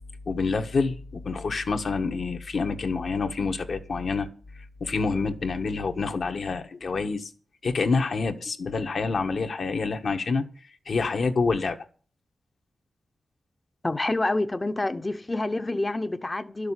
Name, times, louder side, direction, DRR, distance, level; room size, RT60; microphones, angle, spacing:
voice 1, 0.3-4.3 4.6-7.3 7.6-10.4 10.8-11.8, left 4 dB, 65° left, 1.5 m, -27 dB
voice 2, 13.8-16.7, left 2 dB, 25° left, 0.9 m, -27 dB
12.0 x 6.7 x 9.7 m
cardioid pair, 85°, 0 cm